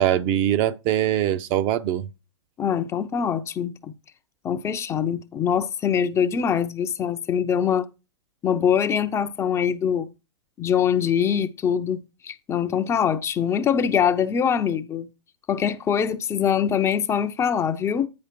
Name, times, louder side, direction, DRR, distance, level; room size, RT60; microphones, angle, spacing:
voice 1, 0.0-2.1, right 11 dB, 35° right, 0.6 m, -22 dB
voice 2, 2.6-3.9 4.4-7.9 8.4-10.1 10.6-15.1 15.5-18.1, left 8 dB, 20° left, 0.6 m, -23 dB
9.6 x 4.8 x 4.5 m
figure-of-eight pair, 115°, 15 cm